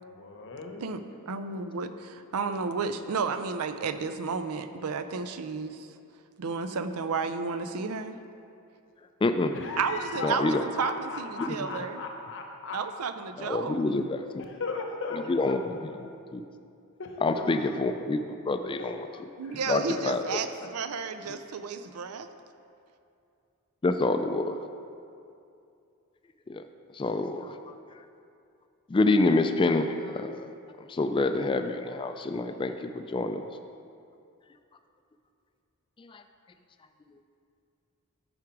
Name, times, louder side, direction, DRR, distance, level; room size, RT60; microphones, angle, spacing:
voice 1, 0.1-0.9 9.5-12.8 14.4-15.6 17.0-17.5 18.8-18.9 19.4-19.6 20.2-20.3 20.6-20.7, left 3 dB, 60° left, 3 dB, 1.0 m, -37 dB
voice 2, 0.8-5.9 6.4-8.1 9.8-12.0 12.7-14.1 19.4-22.3, right 5 dB, 90° right, 10 dB, 0.5 m, -32 dB
voice 3, 9.2-9.5 10.2-10.6 11.4-11.9 13.4-14.2 15.1-15.6 16.3-16.4 17.2-19.0 19.7-20.4 23.8-24.6 26.5-26.6 26.9-27.7 28.9-30.5 30.8-33.4 36.0-36.2, left 2 dB, 25° left, 7 dB, 0.3 m, -27 dB
13.5 x 4.9 x 4.7 m, 2.5 s
head